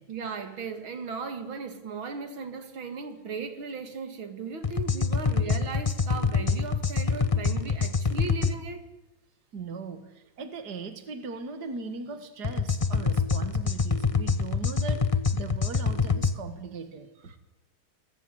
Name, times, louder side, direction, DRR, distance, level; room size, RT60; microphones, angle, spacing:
voice 1, 0.1-8.8 17.3-17.4, right 5 dB, 75° right, 3.0 m, -37 dB
sound 1, 4.6-8.5 12.4-16.3, left 5 dB, 30° left, 0.7 m, -26 dB
voice 2, 9.5-15.0 15.3-17.3, right 4 dB, 55° right, 2.5 m, -39 dB
26.5 x 20.5 x 9.9 m
omnidirectional pair, 2.2 m